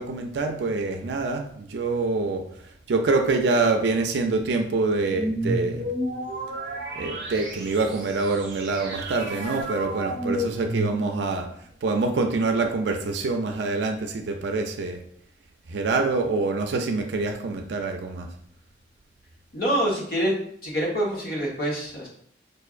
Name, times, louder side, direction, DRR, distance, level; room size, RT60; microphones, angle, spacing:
voice 1, 0.0-2.5 2.9-5.9 6.9-11.5 11.8-15.0 15.7-18.3, right 3 dB, 80° right, 4 dB, 0.4 m, -25 dB
sound 1, 5.1-11.4, right 1 dB, 55° right, 0.9 m, -31 dB
voice 2, 19.5-20.3 20.6-22.1, equal, 55° left, -3 dB, 1.0 m, -26 dB
4.7 x 2.5 x 2.4 m, 0.64 s
head